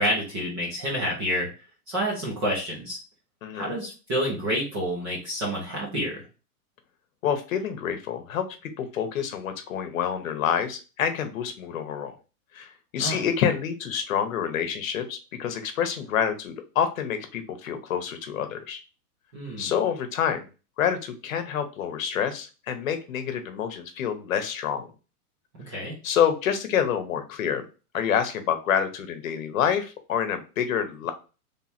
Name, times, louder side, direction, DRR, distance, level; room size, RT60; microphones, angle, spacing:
voice 1, 0.0-1.5 1.9-3.0 3.5-6.2 13.0-13.2 19.3-19.7 25.7-26.0, equal, 15° right, -5 dB, 0.7 m, -28 dB
voice 2, 3.4-3.8 7.2-12.1 12.5-18.8 19.6-20.5 20.8-24.9 26.0-27.6 27.9-31.1, left 8 dB, 60° left, 8 dB, 1.0 m, -27 dB
3.5 x 3.0 x 4.2 m, 0.32 s
supercardioid pair, 175°, 46 cm